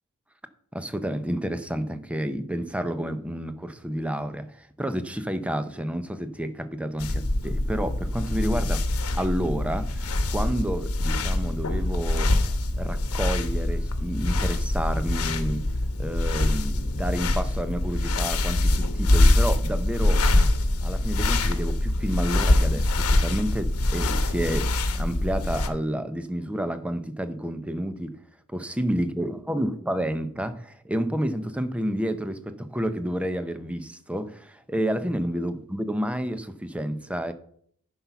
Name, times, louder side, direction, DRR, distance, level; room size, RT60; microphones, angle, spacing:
voice 1, 0.7-8.8 9.2-12.3 12.7-15.7 16.0-20.3 20.8-24.7 25.0-28.2 28.5-37.3, equal, 5° right, 0.6 m, -30 dB
sound 1, 7.0-25.7, left 1 dB, 80° left, 1.0 m, -24 dB
9.9 x 5.6 x 5.9 m
head